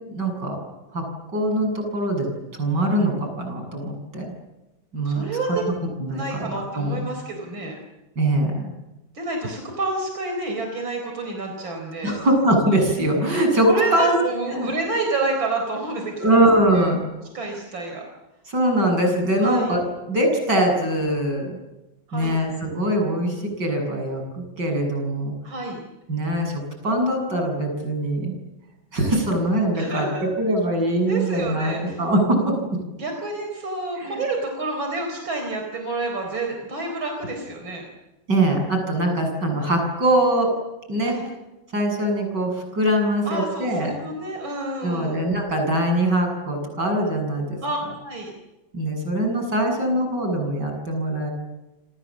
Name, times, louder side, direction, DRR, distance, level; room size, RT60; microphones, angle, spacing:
voice 1, 0.1-0.6 0.9-1.0 1.3-2.3 2.6-4.3 4.9-5.2 6.0-7.1 8.2-8.7 12.0-14.2 14.5-14.7 16.2-17.0 18.5-19.8 20.1-21.6 22.1-25.3 26.1-28.4 28.9-32.6 34.0-34.2 38.3-40.5 40.9-41.2 41.7-43.9 44.8-47.6 48.7-51.3, right 1 dB, 60° right, 3 dB, 8.1 m, -22 dB
voice 2, 5.0-5.7 6.1-7.8 9.1-12.2 13.6-16.5 16.7-16.9 17.3-18.0 19.4-19.7 22.1-22.4 25.4-25.8 29.7-30.3 31.1-32.0 32.9-37.9 41.0-41.2 43.2-45.2 47.6-48.3, right 2 dB, 85° right, 3 dB, 4.9 m, -29 dB
29.0 x 26.0 x 7.4 m, 1.0 s
omnidirectional pair, 2.1 m